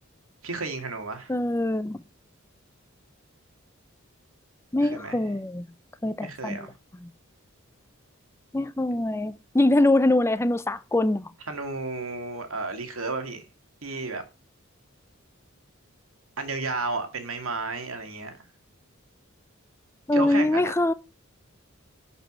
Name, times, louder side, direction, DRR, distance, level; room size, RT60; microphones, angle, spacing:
voice 1, 0.4-1.3 4.8-5.2 6.2-6.7 11.5-13.4 13.8-14.2 16.4-18.3 20.1-20.7, right 3 dB, 85° right, 2.3 m, -32 dB
voice 2, 1.3-2.0 4.7-5.7 6.0-6.7 8.5-11.2 20.1-20.9, left 1 dB, 10° left, 0.5 m, -23 dB
11.0 x 5.5 x 6.1 m
head